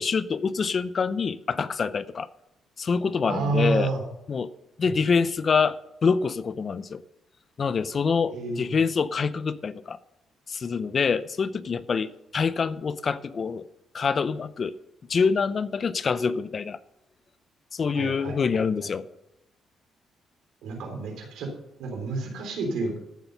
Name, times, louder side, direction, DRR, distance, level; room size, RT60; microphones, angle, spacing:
voice 1, 0.0-2.3 2.8-3.9 4.3-4.5 4.8-7.0 7.6-10.0 10.5-13.7 13.9-14.8 15.1-16.8 17.7-19.0, left 5 dB, 45° left, 16 dB, 0.6 m, -26 dB
voice 2, 3.2-4.0 4.8-4.9 8.3-8.8 17.9-18.4 18.8-18.9 20.6-21.5 21.8-23.0, right 3 dB, 85° right, 2 dB, 3.6 m, -29 dB
14.0 x 6.9 x 5.5 m, 0.84 s
cardioid pair, 90°, 0 cm